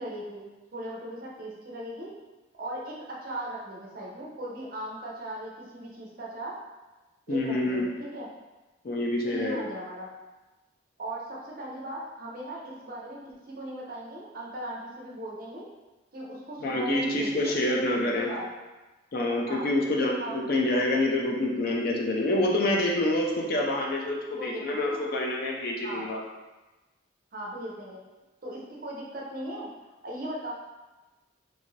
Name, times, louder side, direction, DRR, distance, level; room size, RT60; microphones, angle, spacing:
voice 1, 0.0-2.1 2.5-6.6 7.3-8.3 9.3-10.1 11.0-15.7 16.1-17.6 18.1-18.5 19.5-19.7 20.2-20.4 24.3-25.0 25.8-26.1 27.3-28.0 28.4-29.7 30.0-30.5, right 1 dB, 45° right, -3 dB, 0.6 m, -38 dB
voice 2, 7.3-7.9 8.8-9.7 16.6-18.3 19.1-26.2, left 1 dB, 50° left, -1 dB, 0.4 m, -27 dB
2.6 x 2.5 x 3.1 m, 1.1 s
head